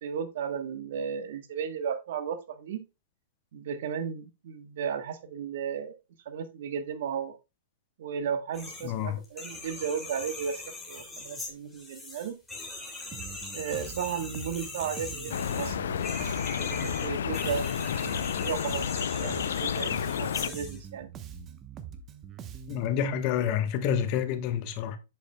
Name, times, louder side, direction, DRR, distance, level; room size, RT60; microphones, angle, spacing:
voice 1, 0.0-2.9 3.5-5.9 6.2-7.3 8.0-12.4 13.5-16.2 16.6-21.1, right 7 dB, 65° right, 1.1 m, -35 dB
sound 1, 8.5-8.9 9.2-20.8, left 3 dB, 5° left, 2.6 m, -41 dB
voice 2, 8.8-9.2 22.7-25.0, left 8 dB, 45° left, 1.0 m, -28 dB
Bass guitar, 13.1-23.0, right 8 dB, 30° right, 0.9 m, -44 dB
sound 2, 15.3-20.5, left 8 dB, 75° left, 0.4 m, -31 dB
8.1 x 6.6 x 2.2 m
hypercardioid pair, 115°, 0 cm